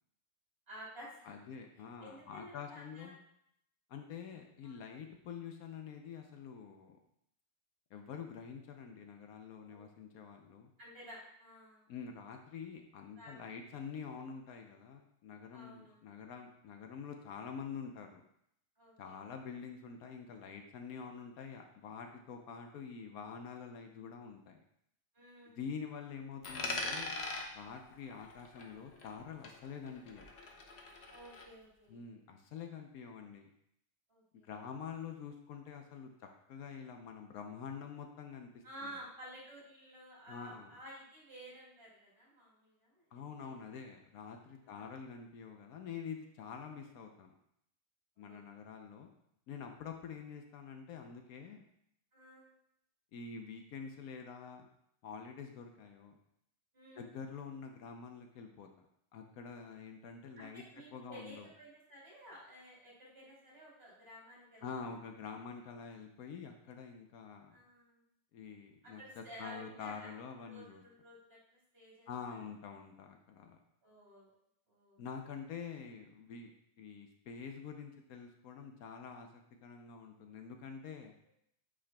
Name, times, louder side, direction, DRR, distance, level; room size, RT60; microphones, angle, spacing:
voice 1, 0.7-1.3 2.0-3.1 4.6-4.8 9.7-9.8 10.8-11.9 13.2-13.3 15.5-15.9 18.8-19.2 25.1-25.6 31.1-32.0 34.1-34.5 38.6-43.5 44.6-45.0 48.2-48.4 52.1-52.5 56.7-57.1 60.4-64.9 67.5-68.0 68.8-72.1 73.8-74.3 74.7-75.0, right 1 dB, 40° right, -6 dB, 2.9 m, -53 dB
voice 2, 1.2-3.2 3.9-7.0 7.9-10.7 11.9-18.2 19.0-24.6 25.5-27.1 27.5-30.3 31.9-33.5 34.4-39.0 40.3-40.7 43.1-47.3 48.2-49.1 49.5-51.6 53.1-54.7 55.0-56.2 57.0-58.7 59.1-60.6 60.9-61.5 64.6-67.6 68.3-70.8 72.1-73.6 75.0-76.5 76.8-81.1, left 6 dB, 75° left, 4 dB, 1.1 m, -47 dB
Coin (dropping), 26.4-29.2 29.4-31.5, left 3 dB, 50° left, 0.9 m, -42 dB
8.4 x 4.9 x 2.2 m, 0.73 s
omnidirectional pair, 1.6 m